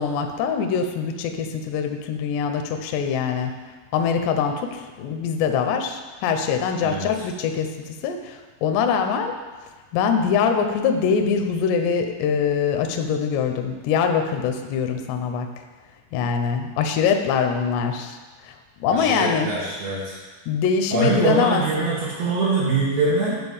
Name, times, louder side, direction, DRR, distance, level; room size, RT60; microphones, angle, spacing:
voice 1, 0.0-3.5 3.9-9.4 9.9-15.5 16.1-18.2 18.4-18.6 18.8-19.5 20.5-21.9, left 6 dB, 80° left, 5 dB, 2.6 m, -23 dB
voice 2, 18.9-20.2 20.9-23.4, right 3 dB, 85° right, -8 dB, 1.4 m, -23 dB
11.5 x 4.0 x 7.1 m, 1.4 s
omnidirectional pair, 5.7 m